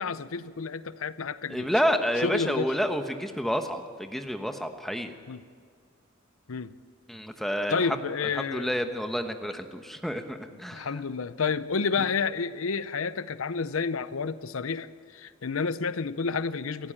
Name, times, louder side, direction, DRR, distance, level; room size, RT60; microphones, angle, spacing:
voice 1, 0.0-1.7 2.2-2.9 5.3-5.4 6.5-6.7 7.7-8.7 10.7-16.9, left 5 dB, 80° left, 15 dB, 0.7 m, -30 dB
voice 2, 1.5-5.1 7.1-8.0 8.4-10.9, equal, ahead, 6 dB, 1.2 m, -29 dB
28.0 x 14.5 x 8.8 m, 2.1 s
head